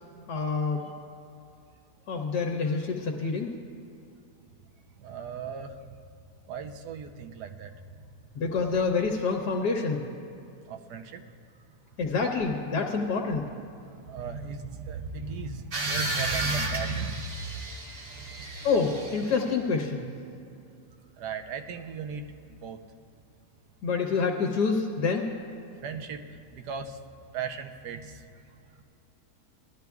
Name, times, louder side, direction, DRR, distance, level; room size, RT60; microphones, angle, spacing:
voice 1, 0.3-0.9 2.1-3.5 8.3-10.0 12.0-13.5 18.6-20.1 23.8-25.3, left 4 dB, 90° left, 1 dB, 1.5 m, -27 dB
voice 2, 5.0-5.8 6.5-7.7 10.7-11.2 13.8-17.2 18.1-18.2 21.2-22.8 25.8-27.0 27.3-28.2, right 5 dB, 85° right, 6 dB, 1.3 m, -36 dB
sound 1, 15.7-19.5, right 2 dB, 50° right, 1.5 m, -33 dB
18.5 x 12.0 x 2.3 m, 2.6 s
omnidirectional pair, 1.7 m